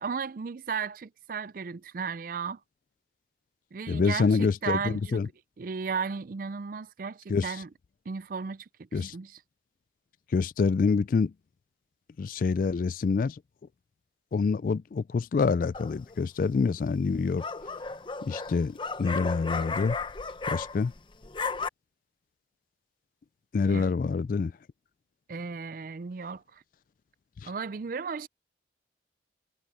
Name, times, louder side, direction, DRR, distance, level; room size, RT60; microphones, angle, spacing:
voice 1, 0.0-2.6 3.7-5.2 5.6-7.7 8.1-9.4 23.7-23.9 25.3-26.6 27.5-28.3, right 5 dB, 50° right, 0.4 m, -35 dB
voice 2, 3.9-5.3 7.3-7.5 8.9-9.1 10.3-11.3 12.2-13.4 14.3-17.4 18.2-20.0 20.5-20.9 23.5-24.5 27.4-27.5, left 4 dB, 50° left, 0.3 m, -26 dB
ladridos de perros, 15.7-16.2 17.1-21.0 21.2-21.7, left 4 dB, 25° left, 0.7 m, -34 dB
head